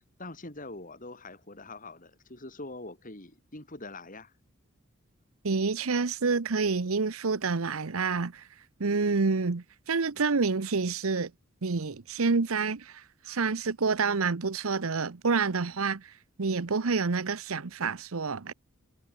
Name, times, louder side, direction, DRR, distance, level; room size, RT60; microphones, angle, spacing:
voice 1, 0.0-4.3, left 2 dB, 40° left, 4.6 m, -44 dB
voice 2, 5.4-8.4 8.8-11.3 11.6-13.0 13.3-16.0 16.4-18.5, right 4 dB, 80° right, 0.9 m, -28 dB
head